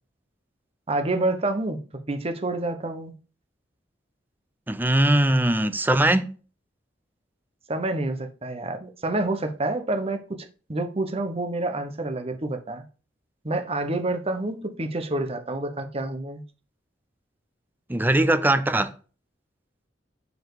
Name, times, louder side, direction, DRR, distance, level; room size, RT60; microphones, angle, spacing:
voice 1, 0.9-1.8 2.1-3.1 7.7-12.8 13.4-16.4, right 2 dB, 35° right, 1.0 m, -28 dB
voice 2, 4.7-6.3 17.9-18.9, right 1 dB, 10° right, 0.6 m, -21 dB
7.0 x 4.3 x 4.8 m
head